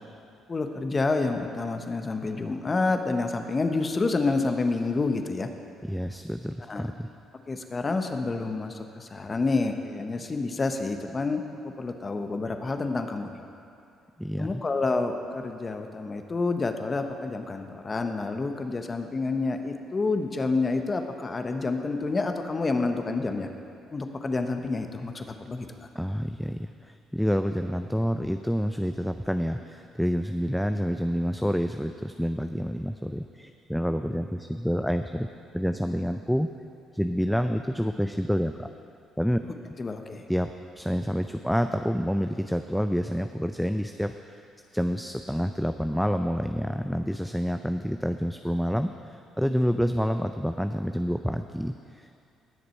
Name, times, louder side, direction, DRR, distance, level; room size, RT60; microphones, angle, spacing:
voice 1, 0.5-5.5 6.7-6.8 7.5-13.4 14.4-23.5 23.9-25.7 39.8-40.3, left 3 dB, 35° left, 6 dB, 1.1 m, -28 dB
voice 2, 5.8-7.1 14.2-14.6 25.9-35.3 35.5-36.5 36.9-38.7 39.2-39.4 40.3-44.4 44.7-52.2, equal, ahead, 7 dB, 0.4 m, -28 dB
18.0 x 6.7 x 4.5 m, 2.5 s
supercardioid pair, 60°, 0 cm